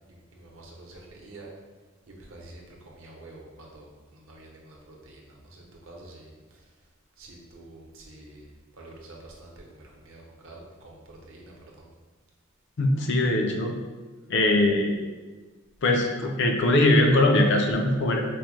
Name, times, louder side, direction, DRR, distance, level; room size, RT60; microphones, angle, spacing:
voice 1, 0.1-1.5 2.1-6.6 7.2-8.4 8.8-11.9, right 2 dB, 65° right, -1 dB, 0.7 m, -48 dB
voice 2, 12.8-13.8 14.3-15.0 15.8-18.2, left 1 dB, 55° left, 2 dB, 0.4 m, -21 dB
4.6 x 2.1 x 3.1 m, 1.3 s
head